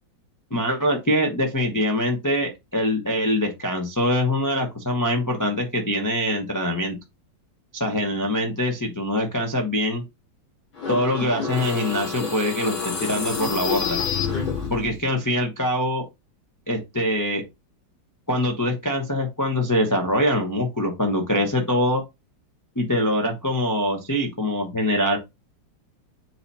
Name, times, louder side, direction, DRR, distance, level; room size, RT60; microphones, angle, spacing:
voice 1, 0.5-7.0 7.7-10.0 10.9-12.7 13.1-14.0 14.7-16.0 16.7-17.4 18.3-22.0 22.8-25.2, left 1 dB, 15° left, 1 dB, 0.7 m, -23 dB
sound 1, 10.7-15.0, left 6 dB, 90° left, 4.0 m, -28 dB
7.8 x 3.0 x 4.2 m, 0.23 s
omnidirectional pair, 2.1 m